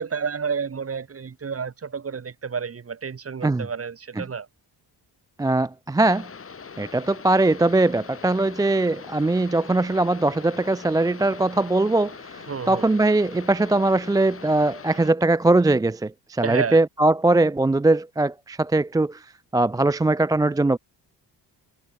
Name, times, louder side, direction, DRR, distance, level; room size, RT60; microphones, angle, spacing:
voice 1, 0.0-4.5 12.5-12.9 16.4-16.8, right 6 dB, 35° right, 2.5 m, -30 dB
voice 2, 5.4-6.3 6.8-19.2 19.5-20.8, right 2 dB, 10° right, 0.4 m, -21 dB
sound 1, 6.1-15.1, left 5 dB, 30° left, 2.6 m, -42 dB
cardioid pair, 115°, 41 cm